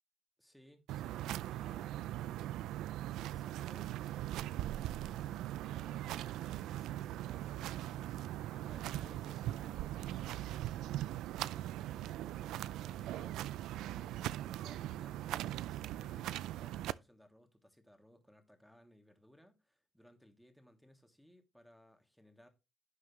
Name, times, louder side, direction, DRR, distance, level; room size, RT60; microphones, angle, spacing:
voice 1, 0.4-2.3 3.3-22.5, equal, ahead, 2.6 m, -62 dB
sound 1, 0.9-16.9, right 13 dB, 90° right, 0.4 m, -40 dB
11.0 x 7.6 x 3.1 m
cardioid pair, 90°, 0 cm